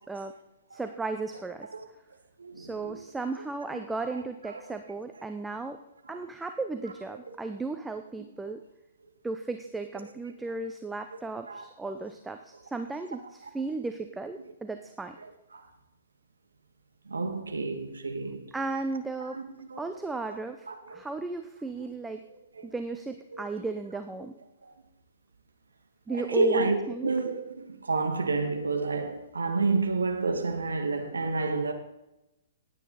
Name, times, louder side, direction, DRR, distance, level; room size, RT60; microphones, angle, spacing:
voice 1, 0.7-1.7 2.5-5.8 6.1-8.6 9.2-15.2 18.5-19.4 19.8-22.2 22.6-24.3 26.1-27.1, right 3 dB, 5° right, 0.8 m, -35 dB
voice 2, 2.4-3.0 3.7-3.8 4.1-4.8 6.1-6.2 11.5-12.0 13.4-13.5 15.2-15.7 17.1-18.5 19.2-19.9 20.3-20.4 20.7-21.0 21.8-21.9 22.5-22.7 23.3-23.7 24.6-24.7 26.1-26.8 27.0-31.7, right 3 dB, 80° right, 2.0 m, -30 dB
17.5 x 9.2 x 4.2 m
figure-of-eight pair, 120°, 0 cm